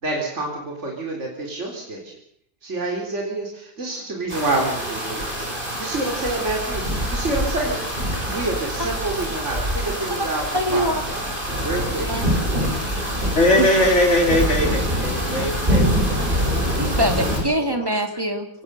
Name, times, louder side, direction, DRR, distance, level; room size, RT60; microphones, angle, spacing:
voice 1, 0.0-2.1 2.6-7.8 8.3-11.3 11.6-12.3, right 2 dB, 55° right, 0 dB, 4.1 m, -28 dB
sound 1, 4.3-17.4, equal, 35° right, 6.9 m, -25 dB
voice 2, 10.5-11.0 12.0-12.3 13.6-13.7 15.3-15.5 16.8-18.5, right 1 dB, 15° right, 6 dB, 2.5 m, -24 dB
voice 3, 13.4-14.7 15.0-17.1 17.6-17.8, left 1 dB, 55° left, 2 dB, 4.5 m, -21 dB
24.5 x 18.0 x 6.8 m, 0.69 s
omnidirectional pair, 1.5 m